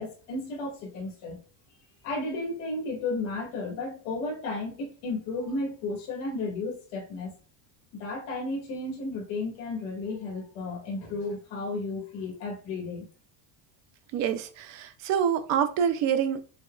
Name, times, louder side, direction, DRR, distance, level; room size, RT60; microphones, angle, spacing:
voice 1, 0.0-1.4 2.0-7.3 8.0-13.1, left 2 dB, 65° left, 0 dB, 1.8 m, -33 dB
voice 2, 14.1-16.4, right 8 dB, 45° right, 10 dB, 0.5 m, -26 dB
6.1 x 2.2 x 2.4 m, 0.38 s
cardioid pair, 175°, 41 cm